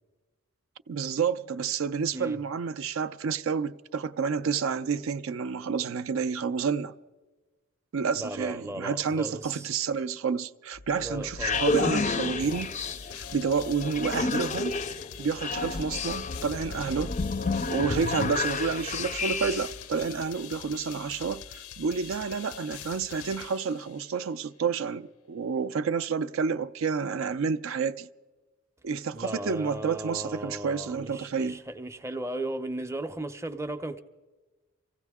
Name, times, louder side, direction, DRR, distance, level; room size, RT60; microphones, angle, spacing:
voice 1, 0.9-6.9 7.9-12.7 13.3-14.8 15.2-17.1 17.7-21.4 21.8-28.1 28.8-31.6, right 5 dB, 65° right, 0.4 m, -29 dB
voice 2, 8.1-9.7 11.0-11.6 29.1-34.0, right 1 dB, 15° right, 0.6 m, -36 dB
sound 1, 10.8-19.8, left 3 dB, 35° left, 0.4 m, -30 dB
sound 2, 12.4-24.3, left 10 dB, 90° left, 0.5 m, -44 dB
25.0 x 15.5 x 3.5 m
head